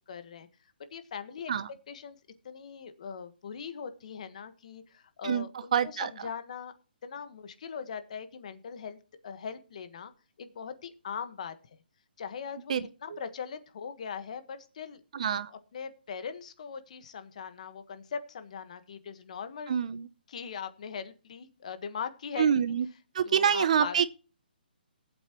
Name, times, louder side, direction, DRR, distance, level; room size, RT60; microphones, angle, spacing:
voice 1, 0.1-0.5 0.9-1.5 1.9-2.2 2.4-6.7 7.0-9.0 9.2-10.1 10.4-11.5 12.2-15.0 15.5-19.8 20.3-22.5 23.2-24.0, left 6 dB, 45° left, 1.4 m, -40 dB
voice 2, 5.7-6.1 12.7-12.8 13.1-13.2 15.1-15.5 19.7-20.1 22.4-22.9 23.1-24.1, right 8 dB, 45° right, 0.7 m, -26 dB
18.5 x 8.2 x 3.1 m
hypercardioid pair, 170°, 5 cm